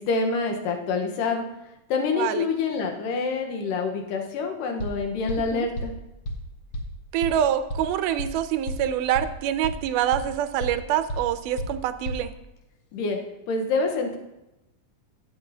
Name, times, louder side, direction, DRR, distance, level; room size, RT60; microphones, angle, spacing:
voice 1, 0.0-1.4 1.9-5.9 12.9-13.2 13.5-14.2, left 4 dB, 90° left, 3 dB, 2.7 m, -26 dB
voice 2, 2.2-2.5 5.5-5.7 7.1-12.3, right 10 dB, 80° right, 11 dB, 2.1 m, -25 dB
sound 1, 4.8-4.9 5.3-5.4 5.8-5.9 6.2-6.3 6.7-6.8 7.2-7.3 7.7-7.8 8.2-8.3 8.7-8.8 9.1-9.2 9.6-9.7 10.1-10.2 10.6-10.7 11.1-11.2 11.6-11.7 12.0-12.1, equal, 70° left, 1.1 m, -30 dB
12.0 x 8.8 x 2.7 m, 0.95 s
omnidirectional pair, 3.8 m